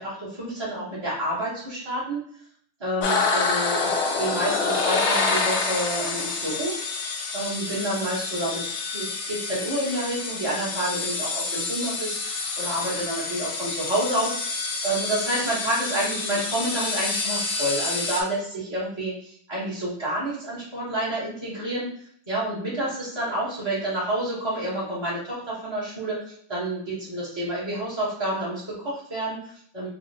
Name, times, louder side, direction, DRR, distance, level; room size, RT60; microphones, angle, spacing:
voice 1, 0.0-2.2 2.8-6.7 7.3-21.9 22.3-29.9, right 1 dB, 30° right, -10 dB, 0.5 m, -29 dB
sound 1, 3.0-18.2, left 4 dB, 75° left, 1.4 m, -28 dB
4.0 x 2.1 x 2.8 m, 0.62 s
omnidirectional pair, 2.4 m